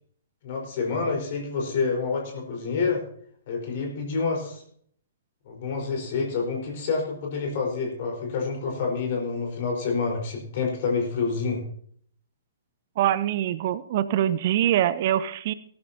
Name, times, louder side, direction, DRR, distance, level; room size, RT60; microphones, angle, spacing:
voice 1, 0.4-3.0 3.5-4.6 5.5-11.6, left 4 dB, 45° left, 1 dB, 4.8 m, -28 dB
voice 2, 13.0-15.5, right 11 dB, 45° right, 16 dB, 0.5 m, -24 dB
18.0 x 13.0 x 2.9 m, 0.62 s
figure-of-eight pair, 115°, 0 cm